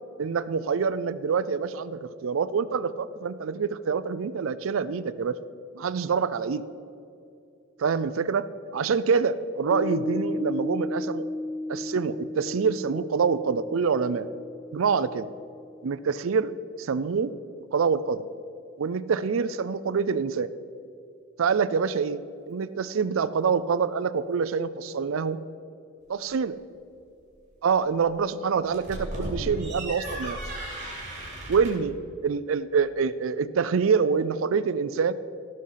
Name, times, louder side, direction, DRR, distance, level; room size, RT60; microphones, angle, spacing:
voice 1, 0.2-5.4 5.7-6.6 7.8-11.3 11.7-14.3 14.7-15.3 15.8-16.5 16.8-17.3 17.7-18.3 18.8-20.5 21.4-25.4 26.1-26.5 27.6-30.4 31.5-32.0 32.2-35.1, right 5 dB, 75° right, 13 dB, 0.4 m, -26 dB
Piano, 9.7-16.5, left 2 dB, 85° left, 0.5 m, -35 dB
sound 1, 28.6-31.9, right 1 dB, 35° right, 3.5 m, -35 dB
17.0 x 6.4 x 5.6 m, 2.6 s
head